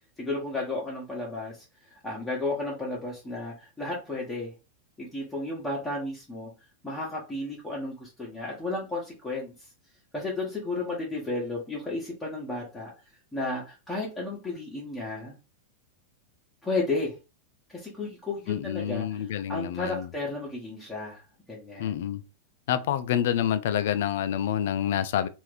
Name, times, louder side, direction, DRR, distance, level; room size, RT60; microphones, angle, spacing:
voice 1, 0.2-4.5 5.0-6.5 6.8-9.7 10.1-12.9 13.3-15.4 16.6-17.1 17.7-22.0, left 2 dB, 10° left, 1.1 m, -33 dB
voice 2, 18.5-20.1 21.8-22.2 22.7-25.3, left 10 dB, 55° left, 0.3 m, -27 dB
3.3 x 2.5 x 3.4 m
figure-of-eight pair, 90°, 0 cm